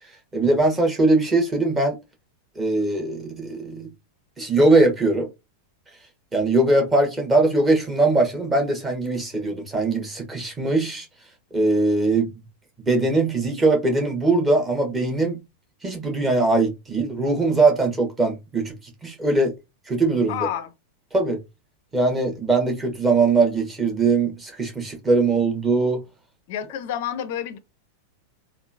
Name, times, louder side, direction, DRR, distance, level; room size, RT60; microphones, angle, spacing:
voice 1, 0.3-1.9 2.6-3.9 4.4-5.3 6.3-11.0 11.5-12.3 12.9-15.4 15.8-18.7 19.0-19.5 19.9-20.5 21.1-21.4 21.9-26.0, right 2 dB, 15° right, 1.3 m, -21 dB
voice 2, 20.3-20.7 26.5-27.6, left 10 dB, 50° left, 0.5 m, -29 dB
3.6 x 2.3 x 2.6 m
figure-of-eight pair, 90°, 0 cm